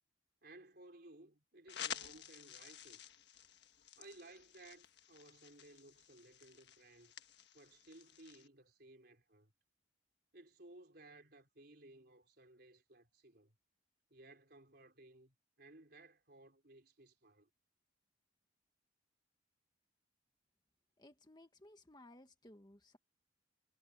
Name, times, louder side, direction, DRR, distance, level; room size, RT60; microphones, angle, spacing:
voice 1, 0.4-3.1 4.0-7.1 7.5-9.5 10.3-13.6 14.1-17.5, right 2 dB, 50° right, 4.2 m, -59 dB
sound 1, 1.7-8.5, left 9 dB, 55° left, 1.5 m, -51 dB
voice 2, 21.0-23.0, left 1 dB, 20° left, 1.5 m, -60 dB
head